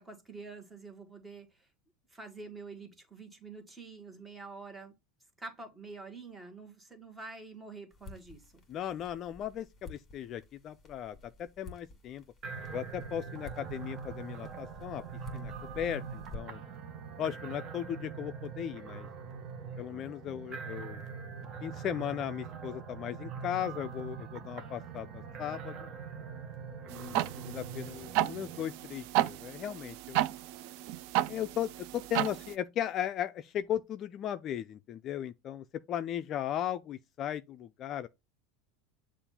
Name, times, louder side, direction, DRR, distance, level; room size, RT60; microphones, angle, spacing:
voice 1, 0.0-1.7 2.1-4.9 5.4-8.6, right 3 dB, 10° right, 1.5 m, -47 dB
sound 1, 7.9-16.8, left 3 dB, 20° left, 2.0 m, -51 dB
voice 2, 8.7-12.2 12.7-15.0 15.3-16.6 17.2-19.1 19.8-21.0 21.6-25.9 26.9-30.2 31.3-38.1, left 10 dB, 35° left, 0.3 m, -37 dB
Acid Trip in the Far East, 12.4-28.6, right 6 dB, 35° right, 1.0 m, -43 dB
sound 2, 26.9-32.5, right 14 dB, 60° right, 0.4 m, -33 dB
6.8 x 2.5 x 5.5 m
supercardioid pair, 135°, 0 cm